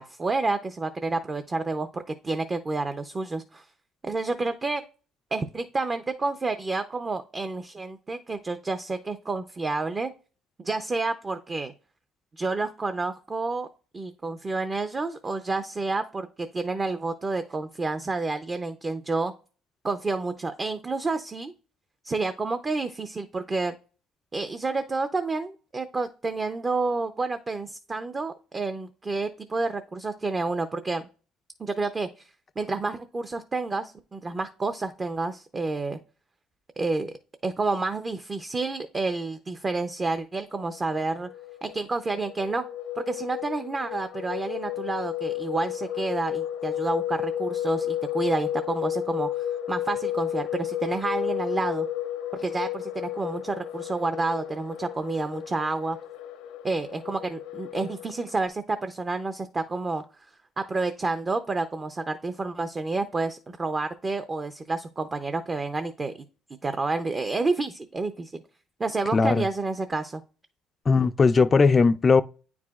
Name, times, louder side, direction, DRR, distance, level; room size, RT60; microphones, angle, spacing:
voice 1, 0.0-3.7 4.0-4.8 5.3-10.1 10.6-11.7 12.3-13.7 13.9-19.3 19.8-21.5 22.0-23.8 24.3-31.0 31.6-36.0 36.8-37.1 37.4-41.3 41.6-42.6 43.0-51.9 52.4-56.0 56.6-60.3 60.6-66.3 66.6-68.4 68.8-70.2, right 3 dB, 25° right, 0.5 m, -29 dB
sound 1, 40.7-58.5, left 10 dB, 80° left, 0.7 m, -33 dB
voice 2, 69.1-69.5 70.9-72.2, left 4 dB, 30° left, 0.3 m, -19 dB
9.1 x 4.7 x 2.4 m
supercardioid pair, 85°, 0 cm